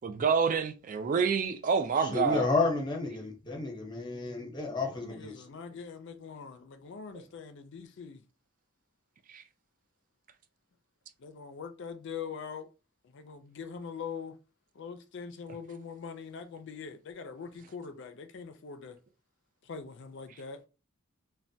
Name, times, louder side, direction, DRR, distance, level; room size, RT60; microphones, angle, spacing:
voice 1, 0.0-2.5 9.3-9.4, right 6 dB, 40° right, 0.3 m, -27 dB
voice 2, 2.0-5.6, left 3 dB, 20° left, 0.7 m, -31 dB
voice 3, 4.7-8.2 11.2-12.7 13.1-14.4 14.7-19.0 19.6-20.6, left 6 dB, 60° left, 0.4 m, -43 dB
3.2 x 2.1 x 2.6 m
head